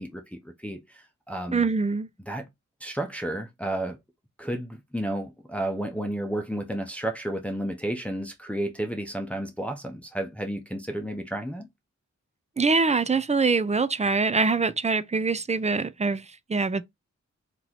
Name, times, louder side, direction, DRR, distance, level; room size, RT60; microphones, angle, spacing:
voice 1, 0.0-1.7 2.3-2.5 2.8-4.0 4.4-11.7, right 1 dB, 5° left, 0.7 m, -32 dB
voice 2, 1.5-2.1 12.6-16.2 16.5-16.8, right 4 dB, 25° right, 0.4 m, -24 dB
3.0 x 3.0 x 3.9 m
wide cardioid pair, 70°, 29 cm